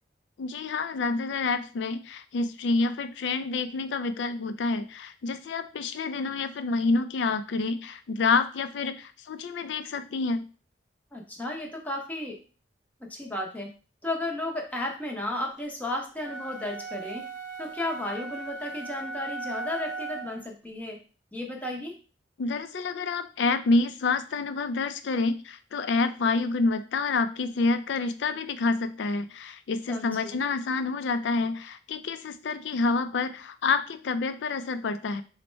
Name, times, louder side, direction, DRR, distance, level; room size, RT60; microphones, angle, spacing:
voice 1, 0.4-10.5 22.4-35.2, left 3 dB, 75° left, 11 dB, 0.4 m, -28 dB
voice 2, 11.1-12.4 13.0-13.7 14.0-17.3 17.6-21.0 21.3-21.9 29.9-30.4, left 1 dB, 10° left, -1 dB, 0.7 m, -33 dB
sound 1, 16.2-20.5, right 3 dB, 80° right, 0.7 m, -38 dB
4.0 x 2.1 x 4.4 m, 0.37 s
head